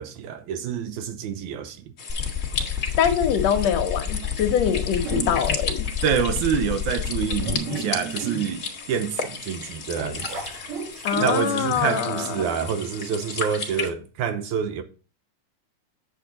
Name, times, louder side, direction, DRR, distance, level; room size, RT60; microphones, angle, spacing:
voice 1, 0.0-1.8 6.0-10.3 11.2-14.8, right 8 dB, 75° right, 2.1 m, -27 dB
sound 1, 2.0-13.9, left 5 dB, 50° left, 1.0 m, -34 dB
sound 2, 2.1-7.5, left 8 dB, 20° right, 0.5 m, -29 dB
voice 2, 3.0-5.9 11.0-12.5, left 8 dB, 75° left, 1.6 m, -24 dB
sound 3, 5.0-5.8 6.4-6.5 7.1-9.2 9.7-11.8, right 4 dB, 50° right, 2.3 m, -33 dB
8.3 x 7.5 x 3.9 m
omnidirectional pair, 3.7 m